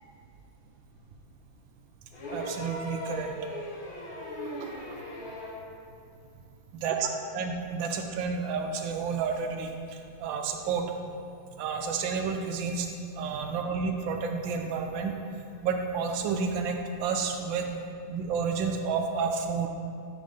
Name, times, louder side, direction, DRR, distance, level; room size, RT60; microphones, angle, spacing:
sound 1, 2.1-5.7 7.0-7.1, left 1 dB, 65° left, 2.2 m, -38 dB
voice 1, 2.3-3.3 4.6-4.7 6.8-7.1 7.3-9.7 10.2-10.8 11.6-12.9 13.2-15.1 15.6-17.7 18.1-19.7, right 5 dB, 75° right, 4 dB, 1.2 m, -30 dB
5.2 x 4.4 x 5.1 m, 2.5 s
omnidirectional pair, 2.4 m